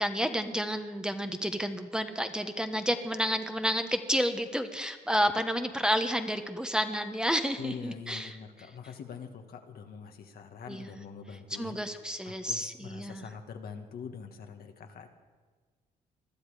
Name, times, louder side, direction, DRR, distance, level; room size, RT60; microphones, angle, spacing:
voice 1, 0.0-8.4 10.7-11.0 11.5-13.2, equal, 5° right, 7 dB, 1.2 m, -30 dB
voice 2, 7.6-12.0 12.3-15.1, left 6 dB, 65° left, 5 dB, 1.7 m, -44 dB
20.5 x 12.0 x 5.0 m, 1.4 s
supercardioid pair, 70°, 17 cm